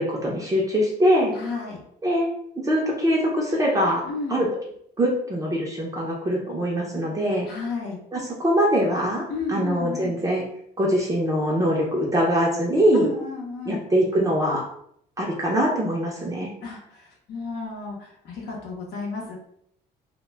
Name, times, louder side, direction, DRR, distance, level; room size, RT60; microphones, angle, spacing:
voice 1, 0.0-1.3 2.0-2.3 2.6-4.0 4.3-4.5 5.0-7.5 8.1-10.4 10.8-13.1 13.7-14.6 15.2-16.5, equal, 20° right, -3 dB, 0.5 m, -23 dB
voice 2, 1.3-1.8 4.1-4.4 7.5-8.0 9.3-10.2 12.9-13.8 16.6-19.4, left 3 dB, 75° left, -2 dB, 0.7 m, -32 dB
2.1 x 2.1 x 3.3 m, 0.70 s
cardioid pair, 110°, 17 cm